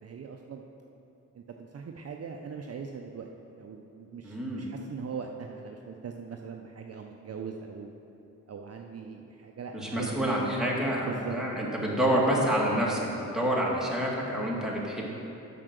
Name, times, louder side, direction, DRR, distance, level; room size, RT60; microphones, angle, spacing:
voice 1, 0.0-0.6 1.3-3.3 3.6-7.9 8.5-10.3 11.1-11.4, right 6 dB, 45° right, 3 dB, 0.6 m, -40 dB
voice 2, 4.2-4.7 9.7-15.1, equal, ahead, -4 dB, 2.0 m, -28 dB
7.2 x 5.9 x 6.6 m, 2.9 s
cardioid pair, 65°, 33 cm